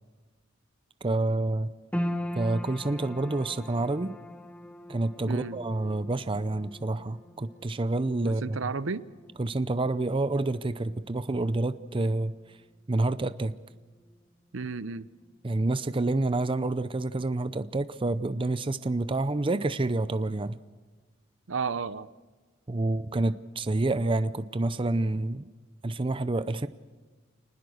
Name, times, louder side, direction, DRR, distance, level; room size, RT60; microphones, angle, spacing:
voice 1, 1.0-1.7 2.4-4.1 4.9-8.6 9.4-12.3 12.9-13.5 15.4-20.6 22.7-25.5 25.8-26.7, right 2 dB, 25° right, 0.6 m, -28 dB
sound 1, 1.9-14.3 14.6-15.5 16.0-16.1, equal, 5° left, 1.4 m, -41 dB
voice 2, 5.3-5.6 8.2-9.1 14.5-15.1 21.5-22.1, right 4 dB, 65° right, 0.7 m, -32 dB
28.0 x 20.0 x 6.5 m
head